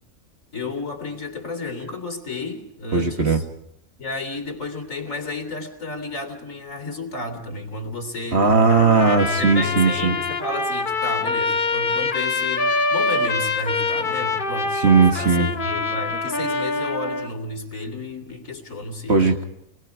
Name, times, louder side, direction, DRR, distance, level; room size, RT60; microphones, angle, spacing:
voice 1, 0.5-3.4 4.0-8.5 9.4-19.2, left 3 dB, 70° left, 5 dB, 3.7 m, -32 dB
voice 2, 2.9-3.4 8.3-10.2 14.8-15.5 19.1-19.4, right 4 dB, 50° right, 3 dB, 2.1 m, -17 dB
Trumpet, 8.7-17.3, left 3 dB, 40° left, 1.4 m, -25 dB
29.5 x 22.0 x 4.8 m, 0.74 s
omnidirectional pair, 1.4 m